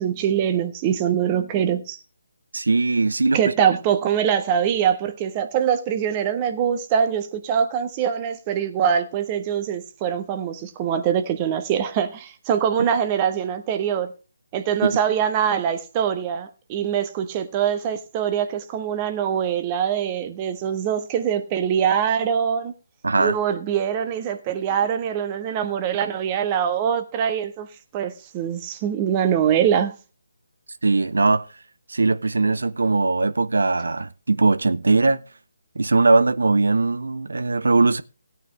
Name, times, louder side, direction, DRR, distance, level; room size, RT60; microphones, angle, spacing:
voice 1, 0.0-2.0 3.3-14.1 14.5-22.7 23.2-27.7 27.9-29.9, right 8 dB, 25° right, 1.3 m, -23 dB
voice 2, 2.5-3.5 14.8-15.0 23.0-23.4 30.8-31.5 31.9-35.2 35.8-38.0, right 3 dB, 65° right, 0.8 m, -20 dB
17.0 x 9.2 x 3.3 m
figure-of-eight pair, 145°, 0 cm